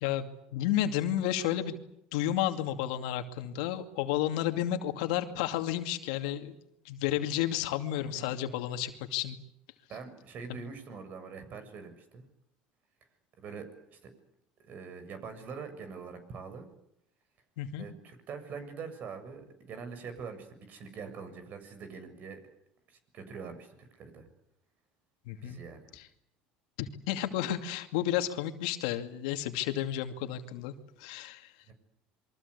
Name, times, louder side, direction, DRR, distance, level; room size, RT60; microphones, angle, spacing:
voice 1, 0.0-1.8 2.1-6.6 6.8-9.4 10.5-10.6 17.6-17.8 25.3-25.6 25.9-26.1 26.8-31.5, left 12 dB, 80° left, 7 dB, 2.4 m, -32 dB
voice 2, 9.9-12.2 13.4-14.1 14.6-16.7 17.8-22.4 22.9-24.3 25.4-25.9 31.7-31.8, right 5 dB, 50° right, 10 dB, 7.2 m, -44 dB
28.0 x 23.5 x 8.4 m, 0.78 s
supercardioid pair, 95°, 4 cm